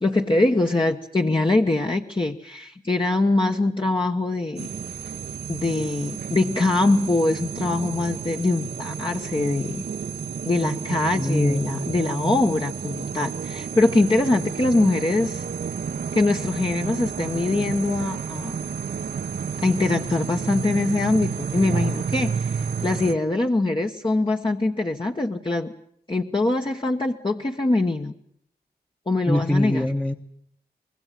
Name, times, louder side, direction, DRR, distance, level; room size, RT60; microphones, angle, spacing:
voice 1, 0.0-4.7 5.5-9.9 10.4-15.4 16.1-18.5 19.6-25.7 26.1-28.1 29.1-29.9, left 2 dB, 30° left, 1 dB, 1.3 m, -23 dB
sound 1, 4.6-23.1, right 6 dB, 80° right, 1.2 m, -31 dB
voice 2, 11.2-11.7 29.3-30.1, left 1 dB, 5° left, 3 dB, 1.2 m, -23 dB
25.0 x 21.0 x 7.6 m, 0.70 s
cardioid pair, 50°, 17 cm